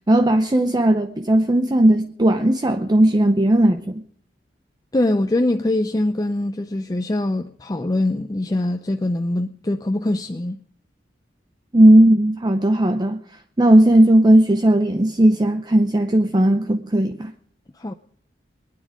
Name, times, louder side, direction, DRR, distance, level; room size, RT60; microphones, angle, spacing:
voice 1, 0.1-4.0 11.7-13.2 13.6-17.3, right 1 dB, 25° right, 0.6 m, -16 dB
voice 2, 4.9-10.6 17.8-17.9, left 1 dB, 20° left, 0.5 m, -23 dB
23.5 x 9.6 x 4.9 m
head